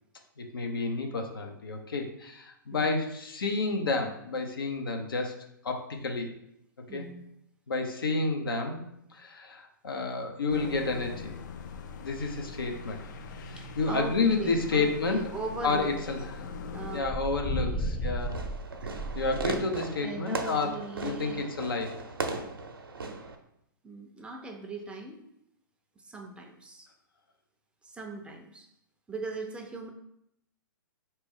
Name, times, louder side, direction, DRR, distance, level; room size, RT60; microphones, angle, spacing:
voice 1, 0.4-5.3 5.6-6.3 6.9-7.1 7.7-8.8 9.1-11.4 12.0-13.0 13.4-15.2 15.6-16.3 16.9-18.4 19.1-20.8 21.0-22.0, left 3 dB, 80° left, 3 dB, 0.8 m, -30 dB
voice 2, 6.9-7.2 13.6-15.9 16.7-17.1 17.6-18.2 18.8-19.1 20.0-21.4 23.8-25.3 26.0-26.9 27.8-28.7 29.1-29.9, right 3 dB, 10° right, 3 dB, 0.5 m, -40 dB
sound 1, 10.5-17.0, left 5 dB, 55° left, 0.4 m, -42 dB
sound 2, 11.6-14.6 15.0-15.7 16.2-19.6, equal, 25° left, 0.8 m, -35 dB
Fireworks, 18.2-23.3, right 3 dB, 85° right, 0.6 m, -37 dB
4.1 x 3.0 x 3.6 m, 0.77 s
hypercardioid pair, 120°, 12 cm